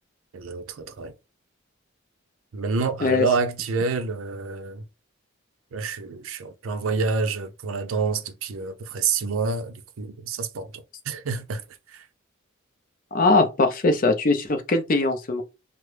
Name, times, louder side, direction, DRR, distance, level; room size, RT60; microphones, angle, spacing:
voice 1, 0.3-1.1 2.5-4.8 5.7-11.6 11.9-12.0, right 4 dB, 90° right, 0.5 m, -28 dB
voice 2, 13.1-15.4, left 3 dB, 40° left, 0.5 m, -21 dB
3.4 x 2.0 x 3.2 m
head